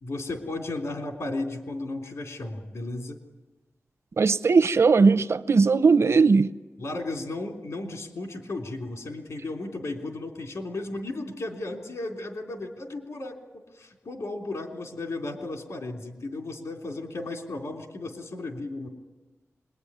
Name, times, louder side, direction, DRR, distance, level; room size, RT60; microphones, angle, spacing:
voice 1, 0.0-3.2 6.8-18.9, left 2 dB, 75° left, 3.3 m, -34 dB
voice 2, 4.2-6.5, right 4 dB, 60° right, 0.7 m, -19 dB
25.5 x 21.5 x 9.8 m
wide cardioid pair, 105°, 5 cm